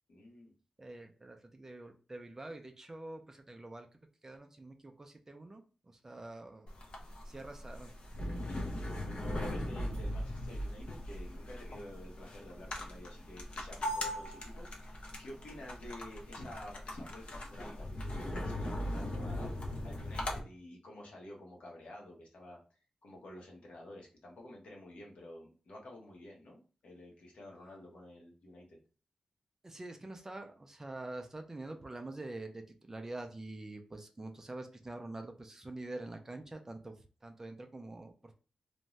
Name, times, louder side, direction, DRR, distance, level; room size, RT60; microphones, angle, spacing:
voice 1, 0.1-0.5 8.2-19.5 19.8-28.8, left 1 dB, 80° left, -1 dB, 0.9 m, -51 dB
voice 2, 0.8-3.9 4.2-6.7 7.2-8.0 29.6-36.9 37.2-38.3, right 2 dB, 20° right, 5 dB, 0.4 m, -46 dB
sound 1, 6.7-20.4, left 1 dB, 60° left, 0.6 m, -39 dB
2.5 x 2.2 x 3.0 m, 0.37 s
wide cardioid pair, 135°, 2 cm